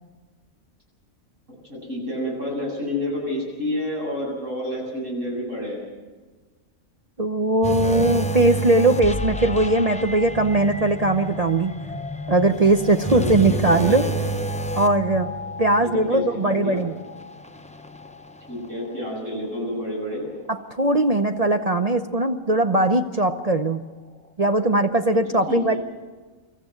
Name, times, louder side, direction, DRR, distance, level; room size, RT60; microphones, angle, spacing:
voice 1, 1.6-5.8 13.1-14.3 15.8-16.8 18.5-20.3 25.5-25.8, left 1 dB, 60° right, -2 dB, 8.4 m, -29 dB
voice 2, 7.2-11.7 12.3-14.1 14.8-15.3 15.6-16.9 20.5-23.8 24.4-25.8, right 2 dB, 40° right, 6 dB, 0.6 m, -20 dB
sound 1, 7.6-19.1 19.4-19.7 20.3-20.4, right 1 dB, 10° left, 0.4 m, -30 dB
25.5 x 14.0 x 7.9 m, 1.3 s
omnidirectional pair, 1.5 m